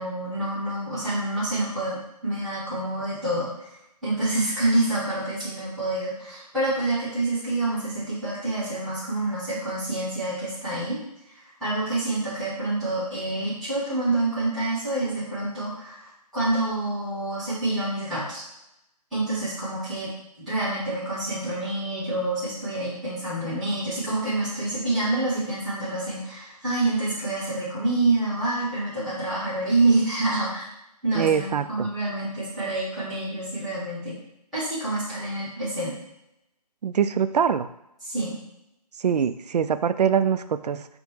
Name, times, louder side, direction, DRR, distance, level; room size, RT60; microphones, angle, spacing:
voice 1, 0.0-3.7 4.0-11.0 11.6-18.4 19.1-20.1 20.5-30.7 31.0-34.1 34.5-35.9 38.0-38.3, right 2 dB, ahead, -13 dB, 0.9 m, -27 dB
voice 2, 31.1-31.9 36.8-37.7 39.0-40.9, right 7 dB, 70° right, 12 dB, 0.4 m, -23 dB
5.3 x 2.1 x 4.4 m, 0.84 s
hypercardioid pair, 170°, 21 cm